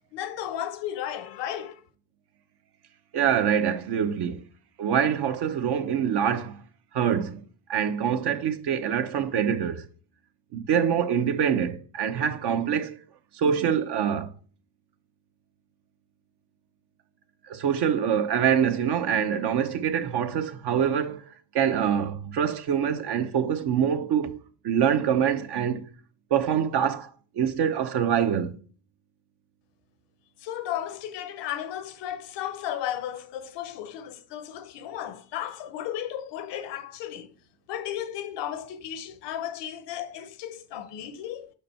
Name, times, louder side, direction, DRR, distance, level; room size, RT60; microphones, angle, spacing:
voice 1, 0.1-1.8 30.4-37.3 37.7-41.5, left 11 dB, 90° left, 0.9 m, -34 dB
voice 2, 3.1-4.4 4.8-6.6 6.9-7.4 7.7-9.8 10.5-13.0 13.4-14.3 17.5-21.2 21.5-24.4 24.6-25.8 26.3-27.1 27.4-28.5, right 8 dB, 70° right, 1.0 m, -25 dB
5.4 x 5.0 x 4.3 m
cardioid pair, 90°, 41 cm